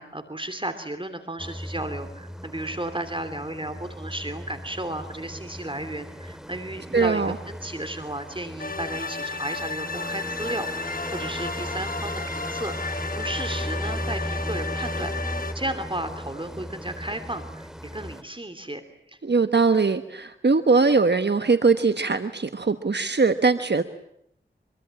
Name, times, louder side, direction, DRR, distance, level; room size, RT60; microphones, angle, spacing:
voice 1, 0.0-18.8 19.1-19.2, right 1 dB, 25° right, 9 dB, 3.0 m, -34 dB
sound 1, 1.4-18.2, equal, 5° right, 2.4 m, -36 dB
voice 2, 6.9-7.3 19.2-23.8, right 4 dB, 65° right, 9 dB, 1.3 m, -21 dB
sound 2, 8.6-15.5, left 4 dB, 50° left, 1.1 m, -33 dB
25.5 x 23.5 x 8.9 m, 0.74 s
wide cardioid pair, 50°, 19 cm